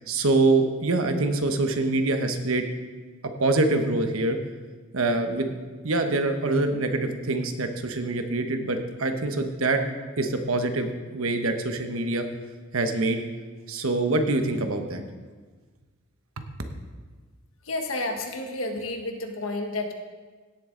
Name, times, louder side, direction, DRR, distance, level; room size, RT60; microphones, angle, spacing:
voice 1, 0.1-2.7 3.4-4.4 4.9-5.5 5.8-9.8 10.2-12.2 12.7-13.2 13.7-15.0 16.4-16.5, right 2 dB, 80° right, 6 dB, 1.2 m, -25 dB
voice 2, 17.6-19.9, left 2 dB, 80° left, 4 dB, 1.4 m, -30 dB
17.0 x 7.7 x 3.9 m, 1.4 s
head